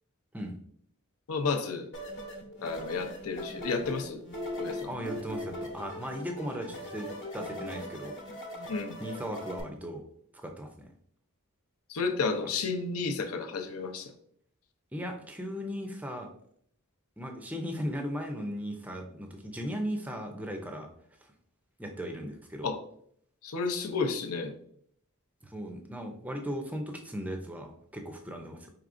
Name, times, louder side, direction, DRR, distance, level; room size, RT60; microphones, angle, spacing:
voice 1, 1.3-1.9 2.6-4.2 4.6-4.9 8.7-9.0 11.9-14.1 22.6-22.8 23.4-24.5, left 4 dB, 75° left, 7 dB, 0.6 m, -32 dB
sound 1, 1.9-9.6, left 1 dB, 55° left, 1.0 m, -40 dB
voice 2, 4.9-8.2 9.0-10.0 10.3-10.9 14.9-16.3 17.2-20.9 21.2-21.3 21.8-22.7 25.4-28.7, equal, 5° right, 4 dB, 0.5 m, -37 dB
4.8 x 3.2 x 2.5 m, 0.65 s
head